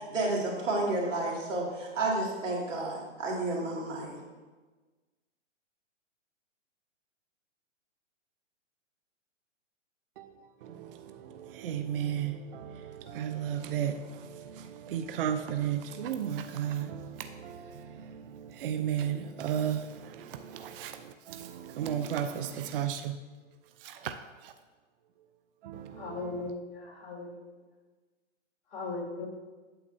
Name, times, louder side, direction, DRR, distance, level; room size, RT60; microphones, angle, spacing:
voice 1, 0.1-4.2, right 2 dB, 80° right, 2.5 m, -31 dB
voice 2, 10.6-23.2 23.8-24.1 24.4-24.5 25.6-26.4, right 9 dB, 50° right, 0.5 m, -34 dB
voice 3, 26.0-27.4 28.7-29.3, left 3 dB, 55° left, 2.5 m, -38 dB
8.6 x 7.1 x 2.7 m
hypercardioid pair, 140°, 37 cm